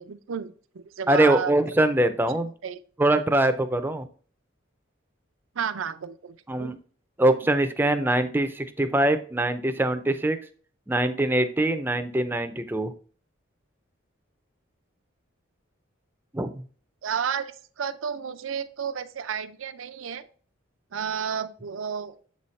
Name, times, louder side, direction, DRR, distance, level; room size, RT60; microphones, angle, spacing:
voice 1, 0.0-1.5 2.6-2.8 5.5-6.7 17.0-20.3 20.9-22.2, right 7 dB, 80° right, 10 dB, 0.5 m, -32 dB
voice 2, 1.1-2.5 3.0-4.0 6.5-6.8 7.2-10.4 10.9-12.9 16.3-16.5, right 1 dB, 10° right, 9 dB, 0.4 m, -23 dB
7.5 x 4.2 x 3.2 m, 0.43 s
head